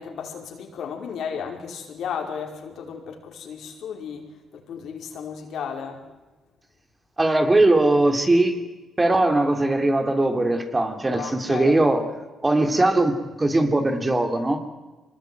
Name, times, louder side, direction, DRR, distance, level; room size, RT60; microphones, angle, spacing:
voice 1, 0.0-6.0 11.1-11.7, left 7 dB, 70° left, 2 dB, 5.2 m, -34 dB
voice 2, 7.2-8.6 9.0-12.1 12.4-14.6, right 2 dB, 20° right, 6 dB, 3.1 m, -20 dB
24.5 x 20.5 x 9.4 m, 1.2 s
cardioid pair, 90°, 0 cm